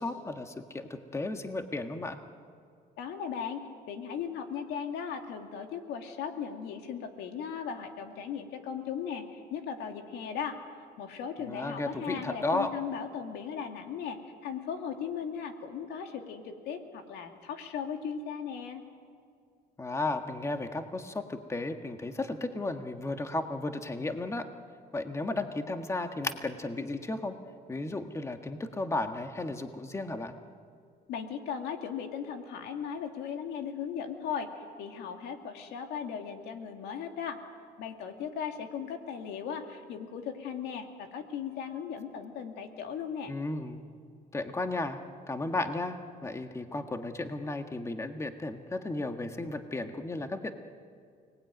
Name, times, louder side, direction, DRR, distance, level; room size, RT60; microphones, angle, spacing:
voice 1, 0.0-2.2 11.4-12.7 19.8-24.4 24.9-27.3 27.7-30.3 43.3-43.8 44.3-45.0 45.3-50.5, left 2 dB, 15° left, 6 dB, 1.6 m, -34 dB
voice 2, 3.0-10.6 11.0-18.8 31.1-37.4 37.8-43.3, left 7 dB, 85° left, 4 dB, 2.5 m, -37 dB
29.5 x 19.5 x 9.4 m, 2.3 s
cardioid pair, 110°, 17 cm